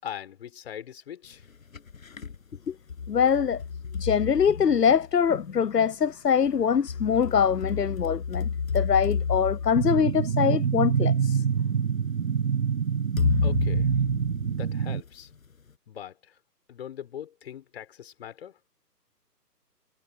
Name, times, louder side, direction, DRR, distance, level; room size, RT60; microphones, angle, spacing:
voice 1, 0.0-1.4 13.4-13.9 14.5-15.3 15.9-16.3 16.7-18.5, left 10 dB, 40° left, 6.0 m, -41 dB
sound 1, 1.4-2.4 2.9-5.3 6.5-10.9 11.7-11.8 13.2-15.1, left 6 dB, 55° left, 7.4 m, -31 dB
voice 2, 3.1-3.6 3.9-8.5 8.7-11.4, left 7 dB, 75° left, 0.9 m, -23 dB
sound 2, 9.7-15.0, right 7 dB, 50° right, 1.2 m, -26 dB
figure-of-eight pair, 145°, 48 cm